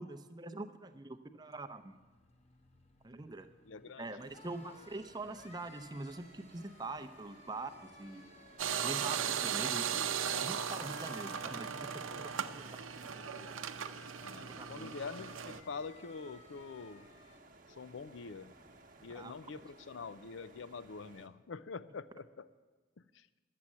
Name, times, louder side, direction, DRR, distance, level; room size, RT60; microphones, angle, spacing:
voice 1, 0.0-2.0 3.0-3.5 4.0-8.2 8.8-10.1 10.4-13.3 14.4-14.9 19.1-19.3, right 2 dB, 20° right, 8 dB, 0.6 m, -44 dB
sound 1, 1.1-17.4, left 3 dB, 30° left, 0.8 m, -58 dB
voice 2, 3.6-4.1 14.2-17.1 17.7-18.5 19.0-22.5 23.1-23.3, left 4 dB, 75° left, 15 dB, 0.5 m, -45 dB
sound 2, 4.2-21.3, right 2 dB, 45° right, 1.0 m, -60 dB
sound 3, 8.6-15.6, right 8 dB, 90° right, 0.7 m, -37 dB
11.5 x 7.6 x 9.6 m, 1.4 s
head